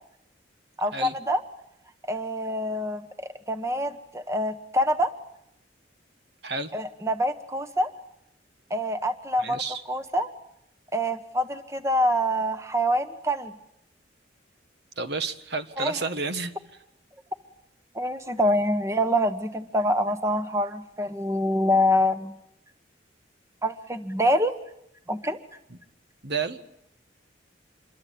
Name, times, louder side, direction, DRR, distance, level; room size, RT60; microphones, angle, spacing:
voice 1, 0.8-1.4 2.1-5.1 6.7-7.9 8.7-9.6 9.9-10.3 10.9-13.5 15.8-16.0 17.9-22.3 23.6-24.5 25.1-25.4, equal, 15° right, 9 dB, 1.3 m, -25 dB
voice 2, 9.4-9.8 15.0-16.5 26.2-26.6, right 4 dB, 60° right, 9 dB, 1.7 m, -30 dB
27.5 x 23.0 x 8.6 m, 0.77 s
head